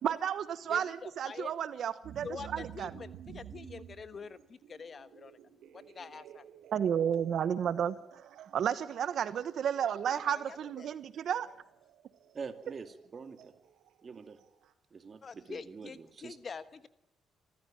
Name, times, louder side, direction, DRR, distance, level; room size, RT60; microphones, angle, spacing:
voice 1, 0.0-2.3 2.5-2.9 6.7-7.9 8.5-11.5, right 8 dB, 65° right, 14 dB, 1.1 m, -32 dB
voice 2, 0.7-1.5 2.2-5.4 5.7-6.4 10.1-10.9 15.2-16.9, left 5 dB, 40° left, 13 dB, 1.3 m, -46 dB
sound 1, 2.0-14.7, right 9 dB, 80° right, 1.9 m, -53 dB
voice 3, 12.3-13.5 14.0-14.4 14.9-16.4, right 5 dB, 40° right, 8 dB, 2.4 m, -45 dB
26.5 x 14.5 x 8.9 m, 0.78 s
cardioid pair, 90°, 0 cm